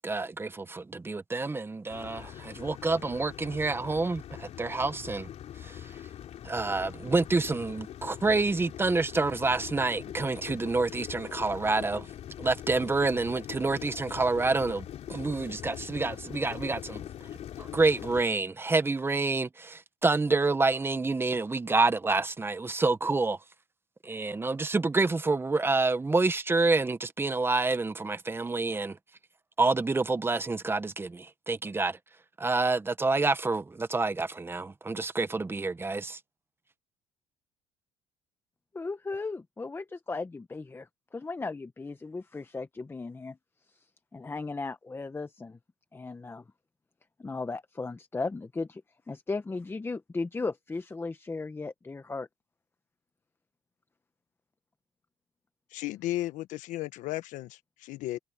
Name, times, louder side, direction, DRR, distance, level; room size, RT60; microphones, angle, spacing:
voice 1, 0.0-5.3 5.6-5.8 6.4-12.1 12.4-17.0 17.6-23.4 24.0-29.0 29.6-32.0 32.4-36.2, right 3 dB, 15° right, 1.2 m, -28 dB
sound 1, 1.9-18.2, left 10 dB, 55° left, 4.1 m, -43 dB
voice 2, 38.7-43.4 43.7-43.8 44.1-45.6 45.9-46.4 47.2-48.8 49.1-52.3, left 3 dB, 20° left, 1.2 m, -36 dB
voice 3, 55.7-58.2, left 16 dB, 75° left, 1.3 m, -34 dB
supercardioid pair, 95°, 13 cm